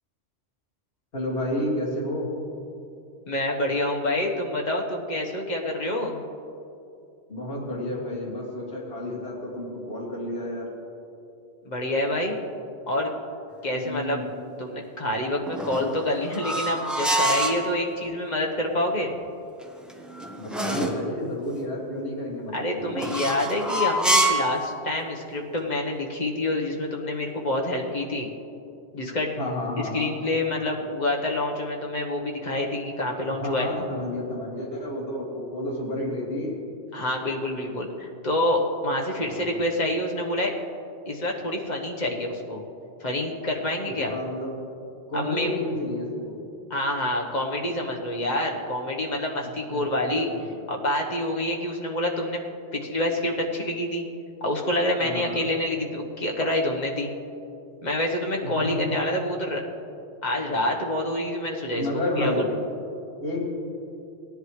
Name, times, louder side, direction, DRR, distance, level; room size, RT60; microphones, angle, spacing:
voice 1, 1.1-2.3 7.3-10.7 13.7-14.2 20.4-23.0 29.4-30.1 33.3-36.6 39.2-39.6 44.0-44.5 45.1-46.4 49.7-50.4 55.0-55.5 58.5-58.9 61.7-62.5 63.2-63.4, left 1 dB, 55° left, -6 dB, 2.4 m, -31 dB
voice 2, 3.3-6.2 11.6-12.4 12.9-13.1 13.6-14.2 14.6-19.1 22.5-28.3 28.9-29.4 29.9-33.7 36.9-40.5 41.0-42.6 43.0-44.2 45.1-45.5 46.7-50.3 50.7-52.4 52.7-54.0 54.4-57.1 57.8-59.6 60.2-61.9 62.2-62.3, left 1 dB, 40° left, 0 dB, 1.2 m, -27 dB
sound 1, 15.5-17.6 19.6-21.0 23.0-24.5, right 1 dB, ahead, 0.7 m, -26 dB
17.5 x 10.5 x 3.2 m, 2.7 s
omnidirectional pair, 1.2 m